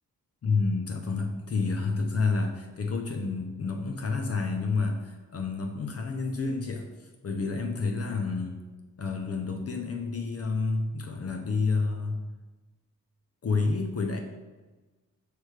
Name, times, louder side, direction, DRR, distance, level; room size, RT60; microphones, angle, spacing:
voice 1, 0.4-8.6 9.0-12.2 13.4-14.2, left 4 dB, 45° left, 4 dB, 0.7 m, -29 dB
8.0 x 4.9 x 3.3 m, 1.2 s
wide cardioid pair, 145°, 33 cm